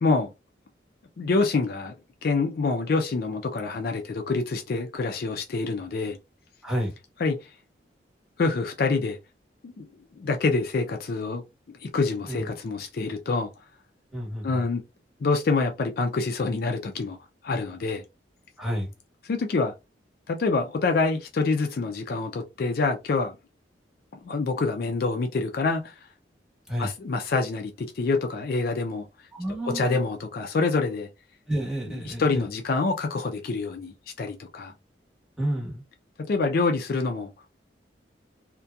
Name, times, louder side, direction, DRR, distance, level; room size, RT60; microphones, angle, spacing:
voice 1, 0.0-0.3 1.2-1.9 2.2-6.2 7.2-7.5 8.4-9.2 9.6-9.9 10.1-11.4 11.8-13.5 14.4-14.8 15.2-17.2 17.4-18.0 19.2-19.7 20.3-23.3 24.2-26.0 26.8-29.1 29.6-31.1 31.9-34.7 36.3-37.3, left 3 dB, 55° left, 0.3 m, -26 dB
voice 2, 6.6-6.9 12.3-12.4 14.1-14.6 18.6-18.9 26.7-26.9 29.3-30.0 31.5-32.4 35.4-35.8, equal, 5° right, 0.9 m, -30 dB
2.7 x 2.2 x 2.2 m
head